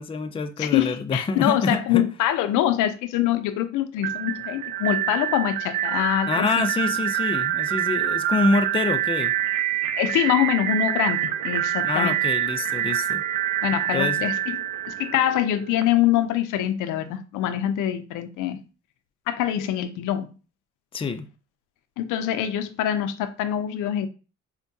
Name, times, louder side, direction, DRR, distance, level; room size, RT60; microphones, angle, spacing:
voice 1, 0.0-2.0 6.3-9.3 11.8-13.2 13.9-14.2 20.9-21.3, left 3 dB, 20° left, 0.4 m, -26 dB
voice 2, 0.6-6.5 10.0-12.2 13.6-14.6 14.9-18.6 19.3-20.3 22.0-24.1, left 11 dB, 90° left, 0.5 m, -24 dB
sound 1, 4.0-15.8, right 11 dB, 80° right, 0.5 m, -26 dB
4.4 x 2.2 x 2.6 m
cardioid pair, 90°, 30 cm